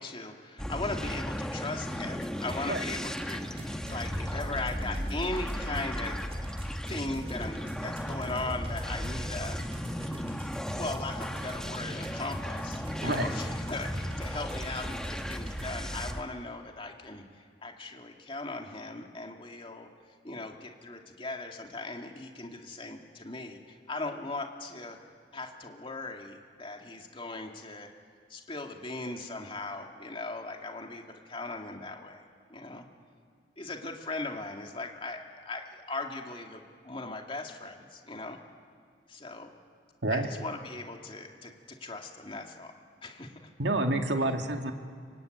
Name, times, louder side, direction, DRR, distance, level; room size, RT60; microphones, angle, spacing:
voice 1, 0.0-6.2 6.9-9.6 10.7-19.9 20.2-25.0 25.3-27.9 28.3-32.2 32.5-32.9 33.6-38.4 39.1-39.5 40.1-43.3, left 2 dB, 30° left, 2 dB, 2.4 m, -38 dB
sound 1, 0.6-16.2, equal, 5° left, 1.0 m, -35 dB
sound 2, 2.2-15.6, right 1 dB, 35° right, 6.0 m, -45 dB
voice 2, 43.6-44.7, right 2 dB, 80° right, 4 dB, 2.1 m, -28 dB
26.0 x 24.0 x 9.4 m, 2.2 s
head